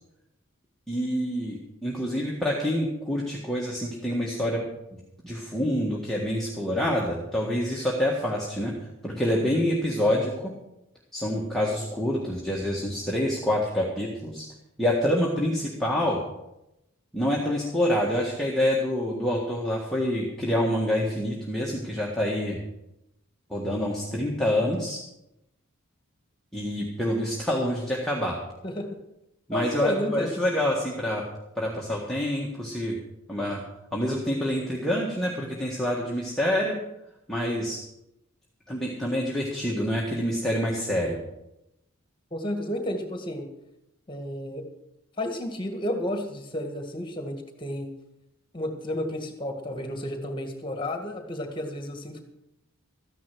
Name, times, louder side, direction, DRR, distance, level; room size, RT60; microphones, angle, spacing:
voice 1, 0.9-4.6 4.9-8.7 9.0-10.5 11.1-14.4 14.8-16.2 17.1-22.6 23.5-25.0 26.5-28.3 29.5-31.2 31.5-33.0 33.3-33.6 33.9-36.8 37.3-37.8 38.7-41.2, equal, ahead, -4 dB, 1.6 m, -27 dB
voice 2, 29.5-30.7 42.3-43.4 44.1-44.7 45.2-47.9 48.5-52.2, left 1 dB, 20° left, 5 dB, 1.8 m, -31 dB
13.5 x 10.0 x 6.2 m, 0.88 s
head